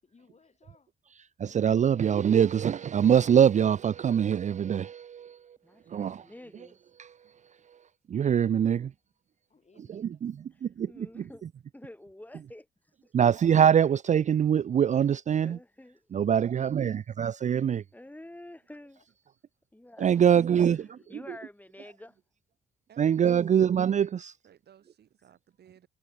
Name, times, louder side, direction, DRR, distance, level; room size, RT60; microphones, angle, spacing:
voice 1, 0.0-0.9 9.5-10.2 13.3-13.4 16.4-17.0 19.0-19.1 20.3-21.2, left 5 dB, 40° left, 7.0 m, -62 dB
voice 2, 1.1-5.6 5.9-6.3 7.0-7.3 7.7-7.8 8.1-8.9 9.9-11.5 12.3-12.5 13.1-15.6 16.1-17.8 20.0-21.4 23.0-24.3, right 8 dB, 40° right, 0.5 m, -24 dB
voice 3, 5.6-6.8 10.6-11.4 11.7-12.7 13.0-13.1 15.4-16.1 17.9-19.0 19.7-20.1 21.1-22.2, left 1 dB, 10° left, 2.8 m, -48 dB
voice 4, 22.9-23.6 24.4-25.9, right 9 dB, 65° right, 3.4 m, -59 dB
supercardioid pair, 65°, 18 cm